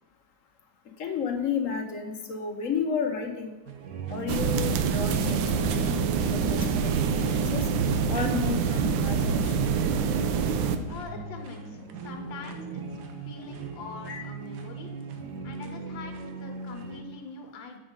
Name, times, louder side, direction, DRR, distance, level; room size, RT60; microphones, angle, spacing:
voice 1, 1.0-3.6 4.1-7.7 8.1-9.7 14.1-14.3, left 6 dB, 55° left, 4 dB, 1.0 m, -32 dB
sound 1, 3.7-17.0, right 3 dB, 70° right, 1.2 m, -38 dB
sound 2, 4.3-10.8, right 6 dB, 85° right, 1.4 m, -26 dB
voice 2, 10.9-12.8 13.1-14.9 15.4-17.8, left 4 dB, 90° left, 3 dB, 1.7 m, -43 dB
8.0 x 5.1 x 5.1 m, 1.1 s
omnidirectional pair, 2.0 m